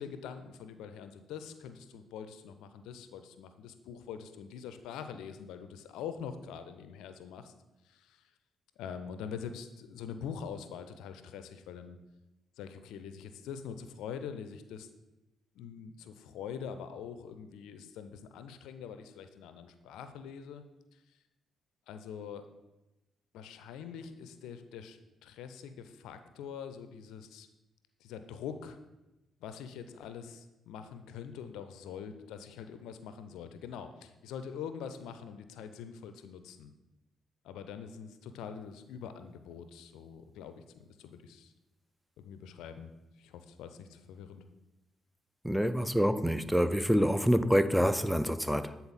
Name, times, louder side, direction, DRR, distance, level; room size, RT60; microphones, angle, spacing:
voice 1, 0.0-7.5 7.8-8.3 8.8-12.0 12.6-14.9 15.5-20.6 20.9-21.2 21.9-22.4 23.3-27.5 28.0-28.8 29.4-36.7 37.4-41.5 42.2-42.9 43.2-44.5, left 7 dB, 80° left, 0.5 m, -44 dB
voice 2, 45.4-48.8, equal, ahead, 0.4 m, -27 dB
8.6 x 4.1 x 4.1 m
supercardioid pair, 50°, 0 cm